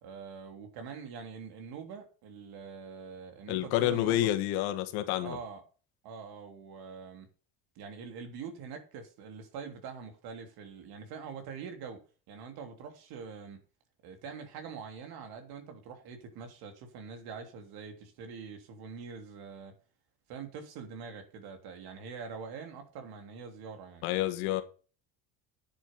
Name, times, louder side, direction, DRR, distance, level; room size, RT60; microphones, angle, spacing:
voice 1, 0.0-4.3 5.2-5.6 6.0-7.3 7.7-13.6 14.0-19.8 20.3-24.0, right 5 dB, 70° right, 3.3 m, -44 dB
voice 2, 3.5-5.4 24.0-24.6, left 14 dB, 85° left, 1.9 m, -29 dB
9.8 x 7.6 x 6.0 m
cardioid pair, 120°, 38 cm